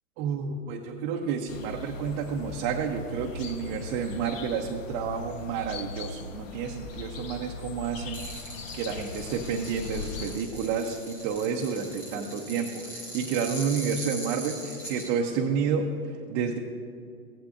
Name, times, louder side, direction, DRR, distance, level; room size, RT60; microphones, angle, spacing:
voice 1, 0.2-8.3 8.7-16.6, right 6 dB, 30° right, 1 dB, 0.7 m, -30 dB
sound 1, 1.5-10.4, left 4 dB, 55° left, 1.2 m, -39 dB
sound 2, 8.1-15.1, equal, 5° left, 0.3 m, -41 dB
15.0 x 11.5 x 2.5 m, 2.3 s
hypercardioid pair, 125°, 45 cm